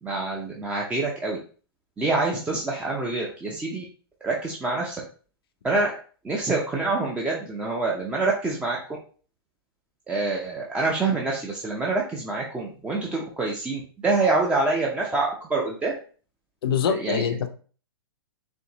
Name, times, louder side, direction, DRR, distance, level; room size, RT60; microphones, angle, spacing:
voice 1, 0.0-1.4 2.0-3.8 4.2-5.0 5.6-5.9 6.2-8.8 10.1-15.9 16.8-17.2, right 3 dB, 10° right, -2 dB, 0.6 m, -26 dB
voice 2, 16.6-17.5, left 8 dB, 65° left, 8 dB, 0.6 m, -24 dB
4.3 x 3.1 x 2.9 m, 0.40 s
hypercardioid pair, 130°, 13 cm